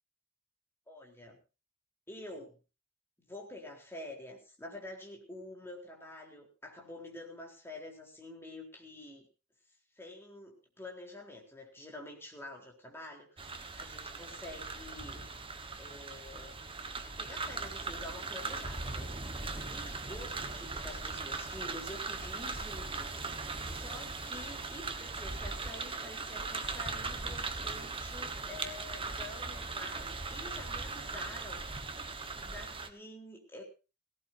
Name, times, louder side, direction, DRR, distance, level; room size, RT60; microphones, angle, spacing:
voice 1, 0.9-1.4 2.1-2.6 3.3-9.3 10.0-15.3 15.8-16.6 17.2-19.1 19.7-23.1 23.4-31.6 32.3-33.6, left 1 dB, 10° left, 0 dB, 4.0 m, -48 dB
sound 1, 13.4-32.9, right 3 dB, 25° right, 1.4 m, -39 dB
18.0 x 17.5 x 2.8 m, 0.31 s
head